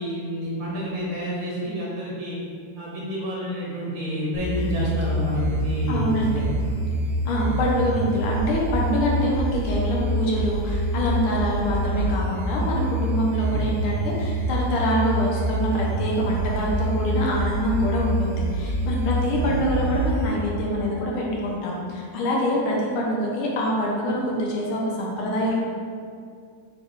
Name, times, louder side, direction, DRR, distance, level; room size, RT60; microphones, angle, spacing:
voice 1, 0.0-2.4 2.8-6.8 13.4-13.6 19.4-19.5, left 1 dB, 65° right, -6 dB, 2.2 m, -29 dB
sound 1, 4.3-20.3, right 1 dB, 20° right, 0.7 m, -26 dB
voice 2, 5.9-6.5 7.3-25.5, equal, 85° left, -3 dB, 1.8 m, -25 dB
5.8 x 3.9 x 4.7 m, 2.2 s
omnidirectional pair, 2.3 m